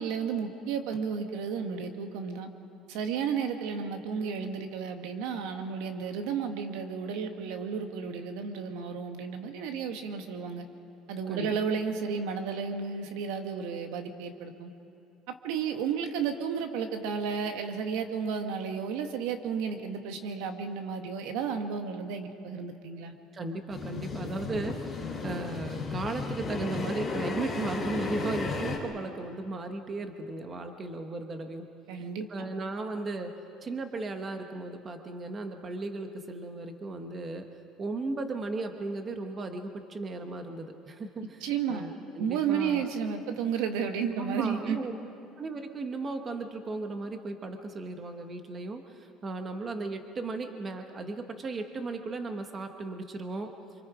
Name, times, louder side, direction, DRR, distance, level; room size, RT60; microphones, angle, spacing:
voice 1, 0.0-2.5 2.9-10.7 11.1-14.7 15.4-23.1 31.9-32.5 41.4-41.8 42.2-44.8, right 6 dB, 85° right, 6 dB, 1.8 m, -32 dB
voice 2, 23.3-24.7 25.2-31.6 32.3-33.3 33.6-37.5 37.8-41.4 41.7-42.9 44.2-44.9 45.4-53.5, right 3 dB, 20° right, 6 dB, 1.2 m, -36 dB
sound 1, 23.7-28.8, left 3 dB, 15° left, 3.3 m, -34 dB
28.0 x 25.5 x 5.0 m, 2.7 s
cardioid pair, 170°, 0 cm